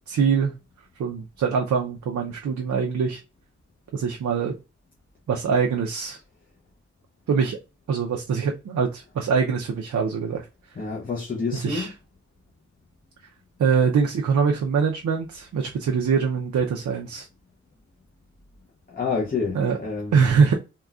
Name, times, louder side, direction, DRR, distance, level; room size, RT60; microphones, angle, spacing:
voice 1, 0.1-0.5 1.0-3.2 3.9-4.6 5.3-6.2 7.3-7.6 7.9-10.4 11.5-11.9 13.6-17.3 19.5-19.8 20.1-20.6, right 6 dB, 75° right, 0.5 m, -23 dB
voice 2, 10.8-11.9 18.9-20.4, left 4 dB, 30° left, 0.6 m, -28 dB
3.7 x 2.2 x 2.3 m
wide cardioid pair, 145°, 29 cm